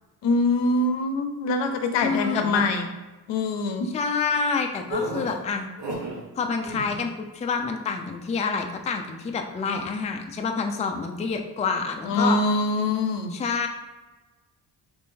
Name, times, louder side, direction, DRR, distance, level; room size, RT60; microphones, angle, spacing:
voice 1, 0.2-2.9 3.3-3.9 12.1-13.3, left 2 dB, 80° left, 6 dB, 0.6 m, -24 dB
voice 2, 2.0-2.6 3.9-5.7 6.4-12.4 13.3-13.7, left 5 dB, 20° left, 4 dB, 0.3 m, -27 dB
sound 1, 4.9-6.2 6.6-7.0, right 1 dB, 70° right, 1.0 m, -32 dB
3.3 x 2.5 x 3.7 m, 1.2 s
cardioid pair, 80°, 42 cm